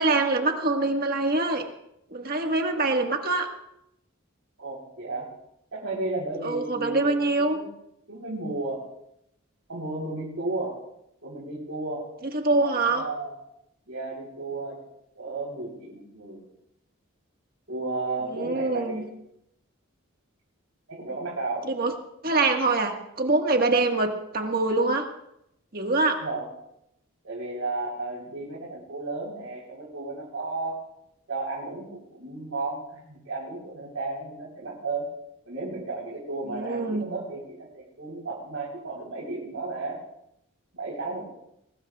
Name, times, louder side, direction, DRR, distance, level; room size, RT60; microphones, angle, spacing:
voice 1, 0.0-1.6 2.1-3.5 6.4-7.6 12.3-13.1 18.3-19.1 21.7-21.9 22.2-25.1 25.7-26.2 36.5-37.0, right 3 dB, 45° right, 3 dB, 1.7 m, -24 dB
voice 2, 5.7-7.7 8.1-8.8 9.7-10.8 11.2-12.1 12.6-13.4 13.9-14.8 15.1-16.4 17.7-19.1 20.9-21.7 22.3-22.5 26.2-26.5 27.2-30.8 31.3-35.1 35.4-40.0 40.7-41.2, right 3 dB, 75° right, -4 dB, 3.9 m, -33 dB
22.5 x 19.0 x 2.4 m, 0.79 s
head